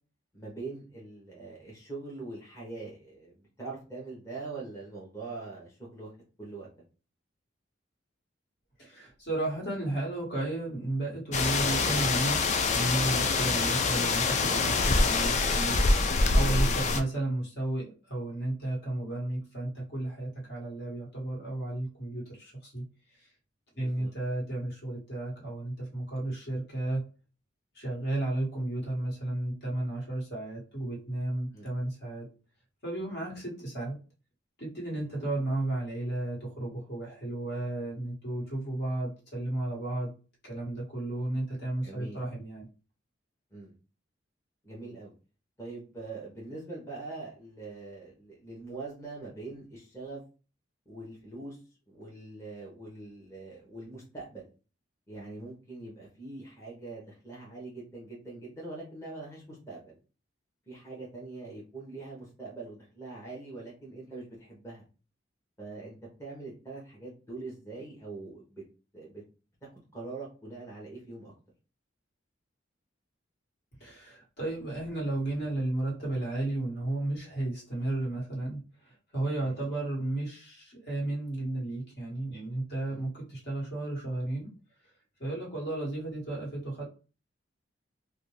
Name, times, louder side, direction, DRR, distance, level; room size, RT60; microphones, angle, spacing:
voice 1, 0.3-6.1 6.4-6.7 13.2-13.4 23.7-24.1 31.5-31.7 41.8-42.2 43.5-43.7 44.6-45.1 45.6-50.2 50.9-51.6 51.9-54.5 55.1-59.9 60.7-64.8 65.6-68.6 68.9-69.2 69.9-71.3 79.4-79.8 82.9-83.1, right 3 dB, 15° left, -4 dB, 0.8 m, -43 dB
voice 2, 8.8-22.8 23.2-23.3 23.8-27.0 27.7-32.3 32.8-34.0 34.6-40.1 40.4-42.7 73.8-84.5 85.2-86.8, right 2 dB, 60° left, -3 dB, 1.4 m, -33 dB
sound 1, 11.3-17.0, left 3 dB, 40° left, 0.3 m, -25 dB
2.5 x 2.1 x 3.1 m, 0.34 s
head